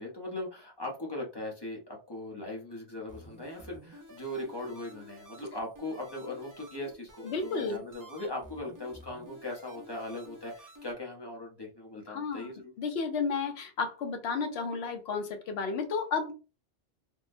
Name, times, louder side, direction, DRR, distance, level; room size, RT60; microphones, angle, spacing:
voice 1, 0.0-12.7, left 1 dB, 25° left, -1 dB, 0.7 m, -39 dB
sound 1, 3.1-10.9, equal, 20° right, 0.5 m, -51 dB
voice 2, 7.2-7.8 12.1-12.5 12.8-16.3, left 5 dB, 70° left, 6 dB, 0.8 m, -32 dB
3.5 x 2.1 x 2.5 m, 0.32 s
omnidirectional pair, 1.2 m